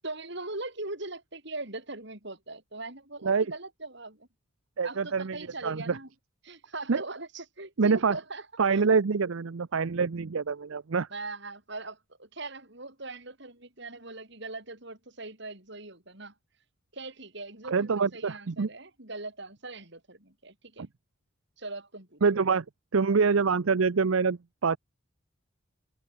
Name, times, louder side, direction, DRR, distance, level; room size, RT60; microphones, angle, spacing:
voice 1, 0.0-4.3 4.8-6.1 6.4-8.5 8.7-8.8 11.1-16.3 16.9-20.9 21.6-22.2, right 2 dB, 55° right, 6.3 m, -41 dB
voice 2, 4.8-5.4 5.6-6.0 6.9-7.0 7.8-8.2 8.6-11.1 17.7-18.7 20.8-20.9 22.2-22.6 22.9-24.8, right 5 dB, 75° right, 0.6 m, -25 dB
head